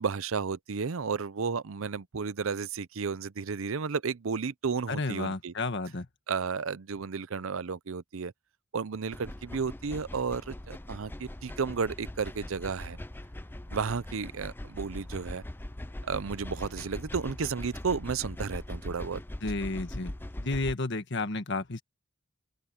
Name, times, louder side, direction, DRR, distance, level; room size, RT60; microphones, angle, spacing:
voice 1, 0.0-5.5 6.3-8.3 8.7-13.0 13.7-15.4 16.0-19.2, right 5 dB, 65° right, 0.6 m, -33 dB
voice 2, 4.9-6.1 19.4-21.8, left 2 dB, 55° left, 1.6 m, -32 dB
sound 1, 9.1-20.8, left 1 dB, 10° left, 0.5 m, -41 dB
open air
head